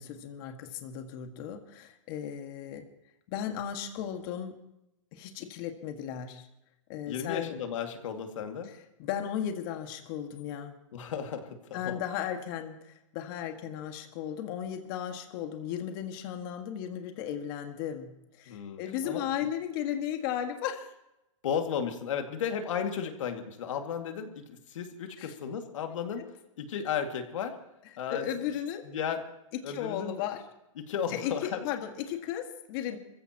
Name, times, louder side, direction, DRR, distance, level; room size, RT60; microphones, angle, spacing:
voice 1, 0.0-2.9 3.3-4.5 5.1-6.5 6.9-7.5 9.0-10.7 11.7-20.9 25.2-25.3 28.1-28.8 29.5-30.4 31.1-33.0, left 9 dB, 45° left, 5 dB, 1.9 m, -35 dB
voice 2, 7.1-8.7 10.9-12.0 18.5-19.3 21.4-26.3 26.6-27.6 28.0-28.2 28.8-29.2 29.6-30.2 30.8-31.6, left 7 dB, 70° left, 5 dB, 2.2 m, -34 dB
26.5 x 15.5 x 3.0 m, 0.87 s
hypercardioid pair, 145°, 17 cm